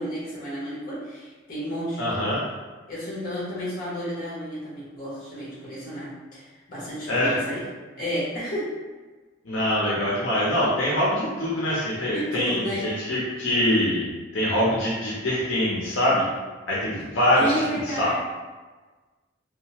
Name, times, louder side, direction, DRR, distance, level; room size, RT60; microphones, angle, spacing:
voice 1, 0.0-2.2 2.9-7.7 8.0-8.7 12.1-12.9 17.3-18.2, equal, 50° left, -8 dB, 1.2 m, -32 dB
voice 2, 2.0-2.5 7.1-7.4 9.4-16.2 16.7-18.2, left 1 dB, 90° left, -7 dB, 0.7 m, -24 dB
2.8 x 2.2 x 2.9 m, 1.3 s
head